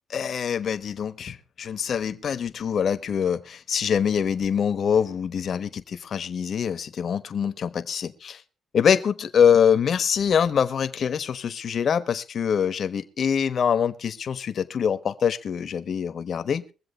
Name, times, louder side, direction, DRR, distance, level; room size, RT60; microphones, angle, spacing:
voice 1, 0.1-8.4 8.7-16.6, left 7 dB, 55° left, 1.1 m, -24 dB
22.5 x 7.7 x 4.4 m
cardioid pair, 90°, 0 cm